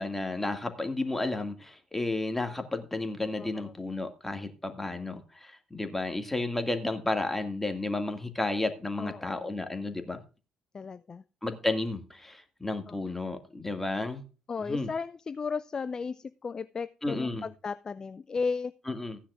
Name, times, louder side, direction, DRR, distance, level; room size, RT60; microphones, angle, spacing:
voice 1, 0.0-10.2 11.4-14.2 14.7-14.9 17.0-17.4 18.9-19.2, left 2 dB, 10° left, 2.1 m, -32 dB
voice 2, 3.4-3.7 9.0-9.5 10.7-11.2 12.9-13.0 14.5-18.7, left 5 dB, 30° left, 0.4 m, -35 dB
15.5 x 10.0 x 2.5 m
figure-of-eight pair, 45°, 2 cm